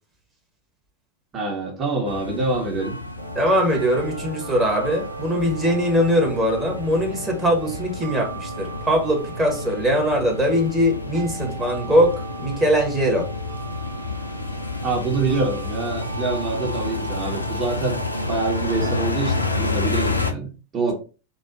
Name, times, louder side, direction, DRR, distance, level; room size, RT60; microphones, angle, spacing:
voice 1, 1.3-3.0 14.8-18.0 18.3-20.9, right 3 dB, 25° right, -1 dB, 1.3 m, -26 dB
sound 1, 2.1-20.3, left 3 dB, 85° left, 0.6 m, -30 dB
sound 2, 3.2-19.6, right 3 dB, 50° right, 1.2 m, -38 dB
voice 2, 3.3-13.3, equal, 5° right, -1 dB, 1.5 m, -21 dB
4.1 x 3.0 x 3.9 m, 0.33 s
figure-of-eight pair, 90°, 0 cm